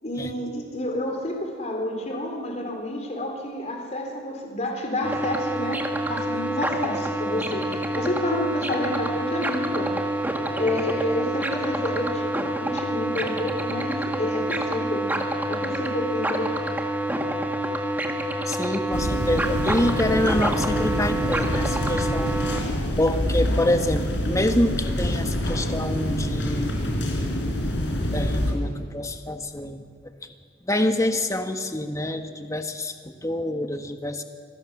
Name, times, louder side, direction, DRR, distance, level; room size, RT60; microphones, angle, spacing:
voice 1, 0.0-10.1 10.6-12.3 12.6-15.1 15.5-16.5, left 1 dB, 35° left, 2 dB, 3.8 m, -29 dB
sound 1, 5.0-22.6, right 1 dB, 10° right, 1.8 m, -27 dB
voice 2, 18.5-22.6 23.0-26.7 28.1-29.9 30.6-34.2, left 1 dB, 15° left, 7 dB, 1.4 m, -26 dB
sound 2, 18.9-28.5, left 1 dB, 75° left, 4.3 m, -26 dB
26.5 x 19.0 x 7.2 m, 2.2 s
head